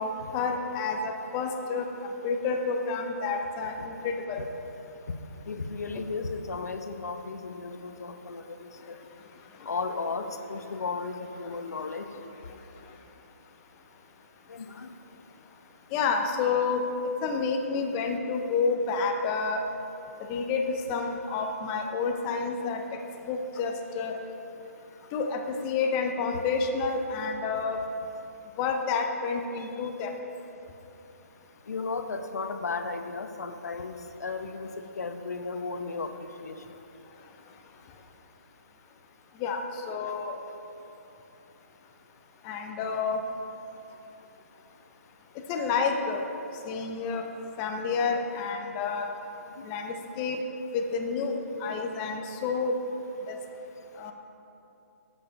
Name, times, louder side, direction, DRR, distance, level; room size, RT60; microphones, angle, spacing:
voice 1, 0.0-1.9 2.2-4.4 15.9-16.9 17.2-19.6 20.3-22.8 23.3-24.2 25.1-27.8 28.6-30.1 39.4-40.4 42.4-43.2 45.5-46.2 46.6-47.3 47.6-49.1 49.6-50.4 50.7-52.7 53.3-53.4 54.0-54.1, left 4 dB, 15° left, 4 dB, 0.4 m, -29 dB
voice 2, 5.5-9.0 9.7-12.1 14.5-14.9 29.6-29.7 31.7-36.8 49.6-49.7, left 4 dB, 80° left, 7 dB, 0.8 m, -35 dB
8.9 x 8.5 x 5.1 m, 2.9 s
hypercardioid pair, 170°, 9 cm